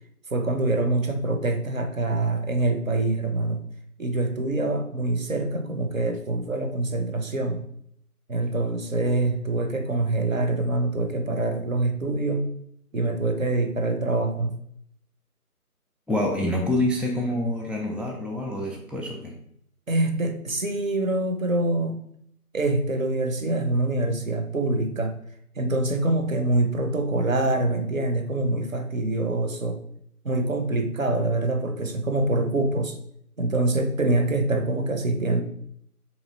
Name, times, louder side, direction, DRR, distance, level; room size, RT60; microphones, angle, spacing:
voice 1, 0.3-3.6 4.0-7.6 8.3-12.5 12.9-14.6 19.9-22.0 22.5-25.1 25.6-29.8 30.2-33.0 33.4-35.4, right 2 dB, 60° right, 5 dB, 0.7 m, -25 dB
voice 2, 16.1-19.4, left 1 dB, 5° right, 0 dB, 0.4 m, -26 dB
3.9 x 3.0 x 4.0 m, 0.70 s
figure-of-eight pair, 175°, 46 cm